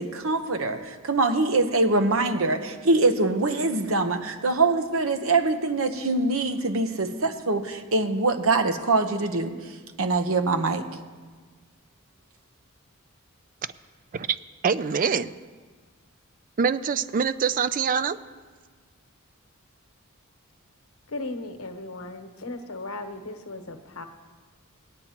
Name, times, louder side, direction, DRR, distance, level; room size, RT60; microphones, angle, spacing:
voice 1, 0.0-9.5 10.0-10.8, right 3 dB, 70° right, 0.9 m, -24 dB
voice 2, 14.6-15.4 16.6-18.2, right 6 dB, 40° right, 0.4 m, -24 dB
voice 3, 21.1-24.0, left 2 dB, 80° left, 1.1 m, -36 dB
20.0 x 9.3 x 2.9 m
head